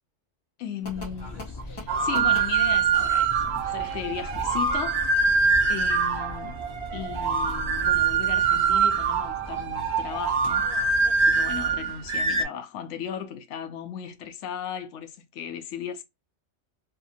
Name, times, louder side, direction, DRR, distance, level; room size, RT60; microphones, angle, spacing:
voice 1, 0.6-5.0 5.7-6.6 6.9-10.7 11.2-16.0, left 8 dB, 85° left, 0.9 m, -36 dB
sound 1, 0.8-11.8, left 1 dB, 30° left, 0.5 m, -40 dB
sound 2, 1.9-12.4, right 5 dB, 70° right, 0.8 m, -24 dB
2.7 x 2.4 x 2.3 m
omnidirectional pair, 1.2 m